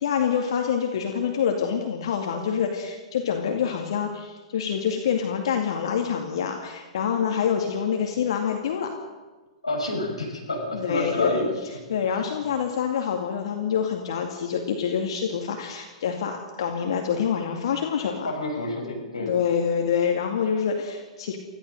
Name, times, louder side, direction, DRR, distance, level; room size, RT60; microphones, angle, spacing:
voice 1, 0.0-8.9 10.7-11.4 11.9-18.3 19.2-21.4, left 7 dB, 55° left, 3 dB, 2.3 m, -26 dB
voice 2, 9.6-11.5 12.1-12.2 18.2-19.3, left 1 dB, 80° left, 0 dB, 6.2 m, -28 dB
25.0 x 16.0 x 6.6 m, 1.3 s
figure-of-eight pair, 105°, 3 cm